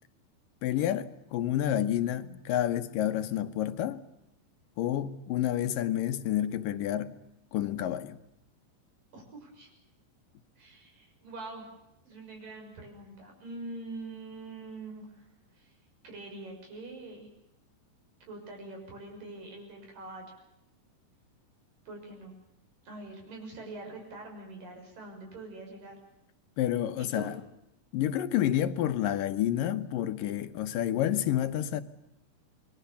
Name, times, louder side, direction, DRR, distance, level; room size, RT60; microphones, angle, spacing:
voice 1, 0.6-4.0 4.8-7.1 7.5-8.2 26.6-27.4 27.9-31.8, left 11 dB, 85° left, 2.8 m, -29 dB
voice 2, 9.1-9.7 10.6-11.7 12.0-15.3 15.5-15.7 16.0-17.3 18.3-20.3 21.9-22.3 22.8-26.0 27.0-27.3, right 2 dB, 80° right, 8.1 m, -44 dB
28.0 x 21.5 x 7.0 m
omnidirectional pair, 3.8 m